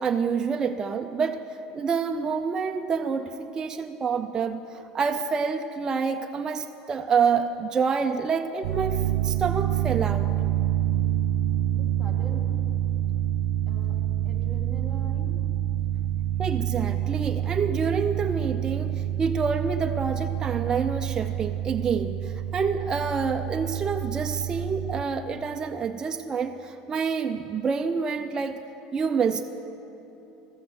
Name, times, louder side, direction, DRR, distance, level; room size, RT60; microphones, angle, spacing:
voice 1, 0.0-1.4 1.7-10.3 16.4-28.6 28.9-29.4, right 5 dB, 25° right, 6 dB, 0.4 m, -27 dB
sound 1, 8.6-25.0, right 12 dB, 85° right, 0.4 m, -27 dB
voice 2, 11.7-12.6 13.7-14.0 14.3-15.4, right 3 dB, 10° left, 0 dB, 1.8 m, -42 dB
13.0 x 7.6 x 6.9 m, 2.9 s
supercardioid pair, 125°, 3 cm